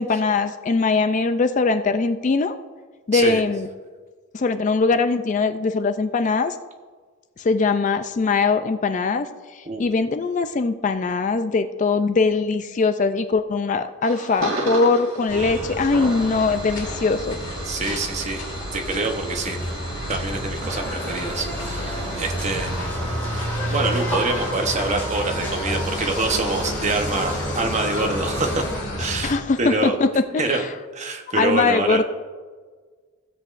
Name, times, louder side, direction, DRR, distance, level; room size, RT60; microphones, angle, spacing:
voice 1, 0.0-2.6 3.1-3.7 4.3-6.6 7.4-17.4 29.2-30.1 30.3-30.4 31.3-32.0, left 4 dB, 35° left, 10 dB, 0.3 m, -21 dB
sound 1, 14.0-24.9, right 2 dB, 75° right, 2.6 m, -35 dB
sound 2, 15.3-29.3, equal, 55° left, 2.2 m, -30 dB
voice 2, 15.3-15.8 17.6-18.4 18.7-19.7 20.1-23.0 23.7-28.6 29.0-29.9 30.4-30.6 30.9-32.0, right 3 dB, 35° right, 3 dB, 0.9 m, -26 dB
sound 3, 20.6-28.8, equal, 10° left, 2.4 m, -33 dB
15.5 x 7.7 x 2.5 m, 1.5 s
head